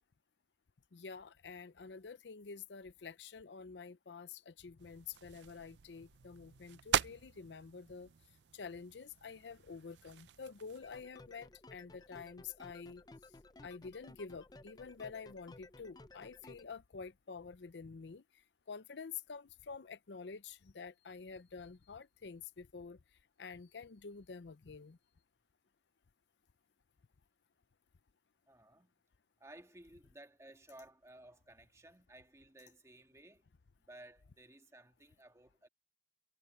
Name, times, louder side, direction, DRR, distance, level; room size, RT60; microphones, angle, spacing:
voice 1, 0.9-8.1 8.5-13.0 13.6-18.2 18.7-23.0 23.4-25.0, left 5 dB, 85° left, 0.6 m, -48 dB
sound 1, 4.8-11.1, right 9 dB, 85° right, 0.5 m, -42 dB
sound 2, 10.8-16.6, left 2 dB, 25° left, 0.6 m, -57 dB
voice 2, 28.5-28.9 29.4-33.5 33.8-35.7, right 1 dB, 15° right, 1.7 m, -57 dB
head